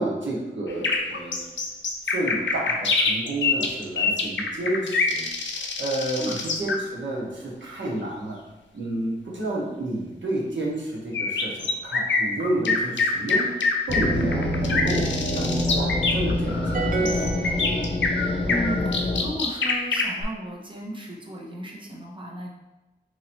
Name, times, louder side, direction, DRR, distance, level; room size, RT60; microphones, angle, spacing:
voice 1, 0.0-1.5 2.1-5.3 5.5-8.4 8.7-13.5 13.9-17.5, right 1 dB, 85° right, -4 dB, 1.0 m, -30 dB
sound 1, 0.7-6.8 11.1-20.2, left 4 dB, 85° left, 0.5 m, -25 dB
sound 2, 13.9-19.3, left 1 dB, 30° left, 0.6 m, -26 dB
sound 3, 16.7-18.5, right 4 dB, 50° right, 0.4 m, -30 dB
voice 2, 18.5-22.5, equal, 25° right, -2 dB, 0.8 m, -34 dB
3.0 x 2.6 x 4.3 m, 1.0 s
wide cardioid pair, 90°, 19 cm